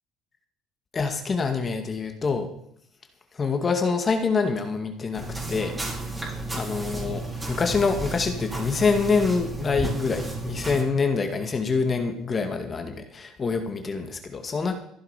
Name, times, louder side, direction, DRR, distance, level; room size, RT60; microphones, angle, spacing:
voice 1, 0.9-2.5 3.3-5.8 6.5-14.7, left 4 dB, 30° left, 6 dB, 2.1 m, -26 dB
sound 1, 5.1-10.8, right 2 dB, 15° right, 5.5 m, -33 dB
15.0 x 11.5 x 5.2 m, 0.70 s
supercardioid pair, 100°, 0 cm